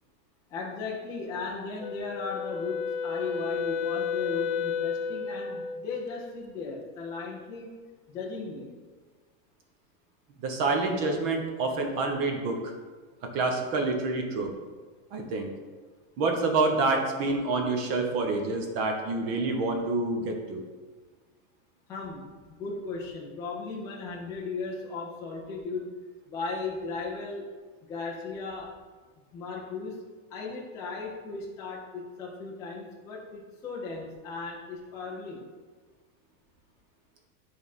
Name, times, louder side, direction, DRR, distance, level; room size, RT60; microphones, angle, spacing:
voice 1, 0.5-7.7 8.1-8.7 21.9-25.9 26.3-27.5 27.9-28.7 29.3-30.0 30.3-35.4, left 4 dB, 10° left, -4 dB, 0.4 m, -36 dB
Wind instrument woodwind instrument, 1.8-5.9, left 6 dB, 80° left, 0.6 m, -32 dB
voice 2, 10.4-12.7 13.3-14.5 15.1-15.5 16.2-20.6, right 3 dB, 35° right, 3 dB, 1.0 m, -27 dB
9.6 x 3.6 x 4.1 m, 1.4 s
supercardioid pair, 160°, 43 cm